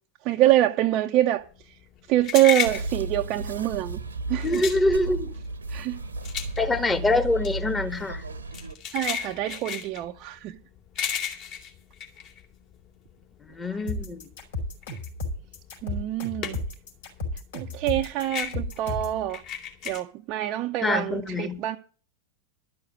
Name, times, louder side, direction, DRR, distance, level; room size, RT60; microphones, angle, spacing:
voice 1, 0.3-1.4 2.1-4.0 4.3-4.6 5.7-6.0 8.9-10.6 15.8-16.6 17.5-19.4 19.9-21.8, right 14 dB, 40° right, 0.7 m, -25 dB
sound 1, 1.5-13.1 13.5-16.9 17.2-20.0, left 8 dB, 40° left, 3.2 m, -34 dB
sound 2, 2.6-8.7, right 2 dB, 75° right, 1.1 m, -34 dB
voice 2, 4.4-5.3 6.6-8.2 13.5-14.2 20.8-21.6, left 2 dB, 15° left, 1.6 m, -25 dB
sound 3, 13.9-19.2, left 2 dB, 60° left, 5.1 m, -33 dB
12.5 x 6.6 x 8.1 m
figure-of-eight pair, 90°, 0 cm